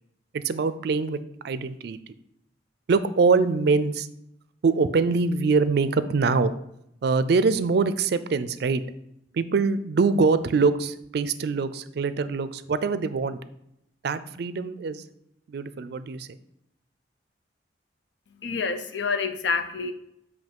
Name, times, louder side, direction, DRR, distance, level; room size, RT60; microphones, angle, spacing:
voice 1, 0.3-1.2 1.4-2.0 2.9-4.1 4.6-6.5 7.0-8.8 9.3-13.4 14.0-15.0 15.5-16.3, right 4 dB, 60° right, 14 dB, 0.4 m, -23 dB
voice 2, 18.3-19.9, left 4 dB, 85° left, 8 dB, 0.6 m, -28 dB
7.9 x 2.7 x 5.2 m, 0.79 s
head